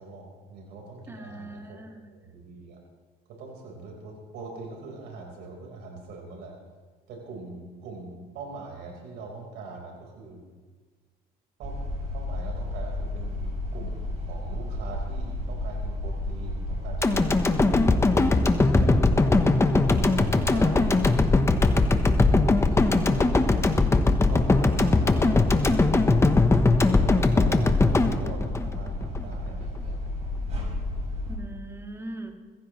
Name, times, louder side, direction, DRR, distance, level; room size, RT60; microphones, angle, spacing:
voice 1, 0.0-1.8 2.1-2.8 3.4-6.5 7.1-10.4 11.6-11.8 12.1-17.9 18.6-22.1 22.6-23.4 24.3-25.9 26.8-30.0, right 3 dB, 90° right, 0 dB, 4.4 m, -42 dB
voice 2, 1.1-2.0 31.3-32.3, right 2 dB, 15° right, 3 dB, 1.9 m, -40 dB
sound 1, 11.6-31.4, left 1 dB, 40° right, 5.0 m, -32 dB
sound 2, 17.0-29.2 29.6-29.7, left 3 dB, 15° left, 1.0 m, -21 dB
22.5 x 15.5 x 3.2 m, 1.4 s
cardioid pair, 110°, 17 cm